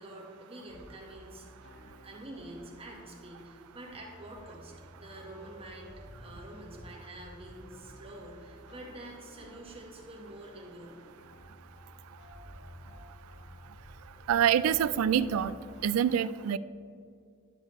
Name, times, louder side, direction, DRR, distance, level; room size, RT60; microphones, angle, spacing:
voice 1, 0.0-1.5 2.0-11.0, right 1 dB, 30° right, -2 dB, 1.4 m, -47 dB
sound 1, 0.7-15.8, equal, 60° left, 1.4 m, -52 dB
voice 2, 14.3-15.5 15.8-16.6, right 9 dB, 90° right, 17 dB, 0.3 m, -26 dB
11.5 x 6.6 x 3.1 m, 2.3 s
head